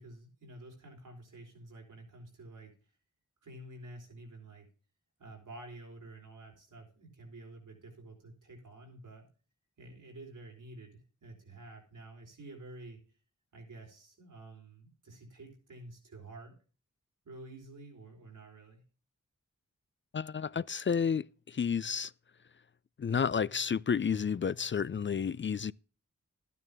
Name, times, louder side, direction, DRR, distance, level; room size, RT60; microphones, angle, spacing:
voice 1, 0.0-2.7 3.4-4.7 5.2-9.3 9.8-13.0 13.5-16.5 17.2-18.8, right 2 dB, 90° right, 4.4 m, -50 dB
voice 2, 20.1-22.1 23.0-25.7, left 6 dB, 40° left, 0.4 m, -31 dB
12.5 x 9.4 x 3.6 m
cardioid pair, 40°, 31 cm